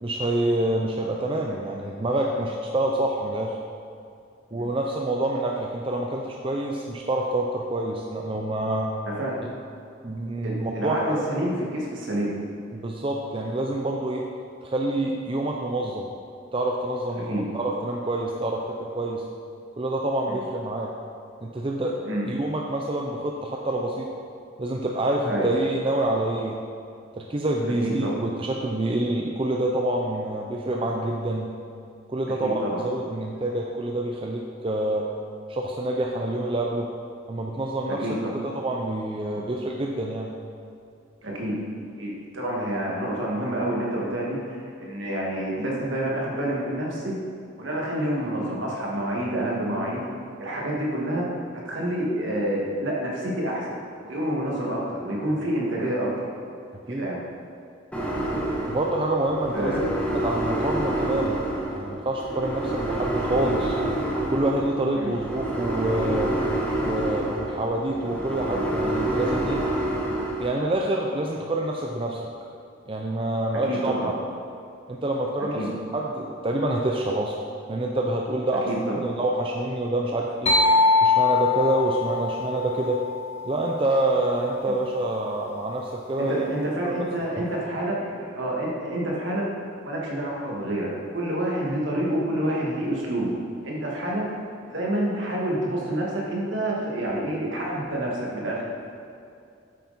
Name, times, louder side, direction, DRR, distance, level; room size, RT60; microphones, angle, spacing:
voice 1, 0.0-3.6 4.5-8.9 9.4-9.5 10.0-11.1 12.7-14.3 14.6-16.1 16.5-19.2 19.8-20.9 21.4-21.9 22.3-24.1 24.6-26.5 27.1-31.5 32.1-35.1 35.5-36.9 37.3-38.1 38.4-40.3 56.9-57.1 58.7-59.8 60.2-61.4 61.7-63.8 64.3-66.3 66.8-69.6 70.4-72.2 72.9-73.9 74.9-75.6 75.9-77.3 77.7-80.5 81.0-83.0 83.4-86.4 86.8-87.0, right 1 dB, 25° right, 0 dB, 0.5 m, -27 dB
voice 2, 9.1-9.4 10.4-12.3 17.3-17.4 20.3-20.4 22.0-22.2 25.3-25.5 27.8-28.2 32.4-32.8 38.0-38.4 39.3-39.4 41.2-41.6 42.0-47.2 47.6-50.0 50.4-51.3 51.7-56.3 56.9-57.2 59.5-60.0 64.9-65.1 73.7-74.1 75.5-75.7 78.7-79.0 86.2-89.4 89.8-93.3 93.6-94.2 94.7-98.7, right 1 dB, 65° right, -3 dB, 1.9 m, -28 dB
sound 1, 57.9-70.5, right 1 dB, 5° left, 1.3 m, -28 dB
sound 2, 80.5-84.1, left 3 dB, 35° left, 1.3 m, -23 dB
8.5 x 8.1 x 4.2 m, 2.5 s
head